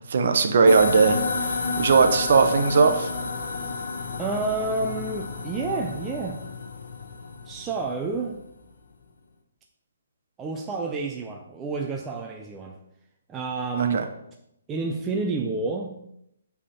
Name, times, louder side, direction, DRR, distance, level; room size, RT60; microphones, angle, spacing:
voice 1, 0.1-1.2 1.4-3.1 13.9-14.1, right 5 dB, 45° right, 7 dB, 0.7 m, -19 dB
sound 1, 0.7-8.3, left 3 dB, 70° left, 0.8 m, -30 dB
voice 2, 4.2-6.4 7.5-8.4 10.4-12.8 13.3-14.1 14.7-15.9, right 3 dB, 10° right, 1 dB, 0.3 m, -29 dB
7.5 x 3.5 x 4.1 m, 0.78 s
hypercardioid pair, 175°, 0 cm